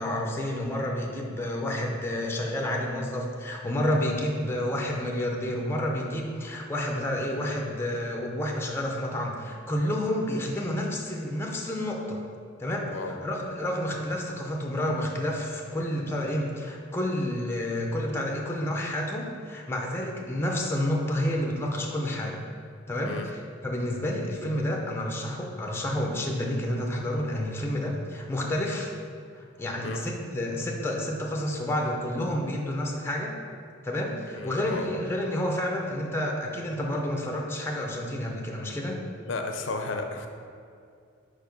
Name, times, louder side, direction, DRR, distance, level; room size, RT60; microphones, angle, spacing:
voice 1, 0.0-12.2 12.6-22.4 22.9-28.9 29.3-33.3 33.8-39.0, left 1 dB, 10° left, 0 dB, 0.5 m, -30 dB
voice 2, 12.9-13.2 23.1-23.3 29.8-30.0 34.4-34.9 39.2-40.3, left 3 dB, 65° left, 4 dB, 0.5 m, -33 dB
4.9 x 4.8 x 5.2 m, 2.3 s
head